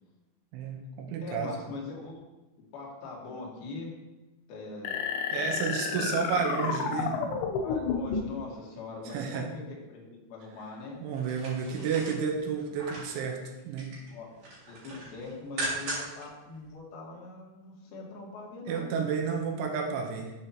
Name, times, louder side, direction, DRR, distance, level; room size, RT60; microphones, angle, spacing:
voice 1, 0.5-1.5 5.3-7.2 9.1-9.5 11.0-14.0 18.7-20.3, right 6 dB, 80° right, 2 dB, 3.3 m, -31 dB
voice 2, 1.2-2.2 2.7-3.9 4.5-5.0 5.3-6.1 7.6-11.0 11.7-11.9 14.0-14.3 14.7-19.1, left 3 dB, 60° left, -2 dB, 3.1 m, -42 dB
sound 1, 4.9-8.4, left 5 dB, 80° left, 3.1 m, -31 dB
sound 2, 11.1-13.2 13.6-14.1 14.4-16.3 16.6-16.7, right 2 dB, 50° right, 3.3 m, -38 dB
11.0 x 6.8 x 3.0 m, 1.0 s
omnidirectional pair, 5.6 m